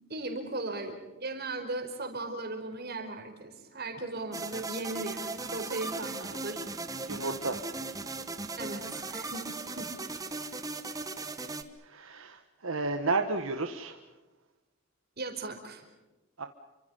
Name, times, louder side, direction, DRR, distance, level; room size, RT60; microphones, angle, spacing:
voice 1, 0.1-6.7 8.6-9.9 15.2-15.8, right 2 dB, 50° right, 4 dB, 4.9 m, -37 dB
sound 1, 4.3-11.6, right 3 dB, 15° right, 1.5 m, -38 dB
voice 2, 7.1-7.6 11.8-14.0 16.4-16.5, right 3 dB, 75° right, 5 dB, 1.5 m, -32 dB
30.0 x 25.5 x 5.6 m, 1.1 s
head